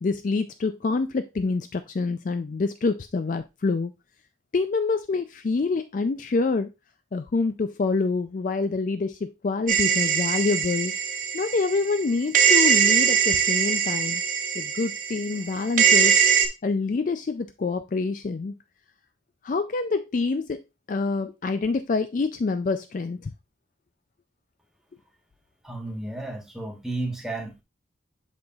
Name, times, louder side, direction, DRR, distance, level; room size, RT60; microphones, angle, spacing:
voice 1, 0.0-3.9 4.5-6.7 7.1-10.9 11.3-14.2 14.6-16.1 16.6-18.5 19.4-20.6 20.9-23.3, left 4 dB, 40° left, 0.3 m, -26 dB
sound 1, 9.7-12.0 12.3-16.5, right 8 dB, 45° right, 0.9 m, -22 dB
voice 2, 25.6-27.6, right 2 dB, ahead, 1.2 m, -33 dB
7.8 x 5.5 x 2.4 m
head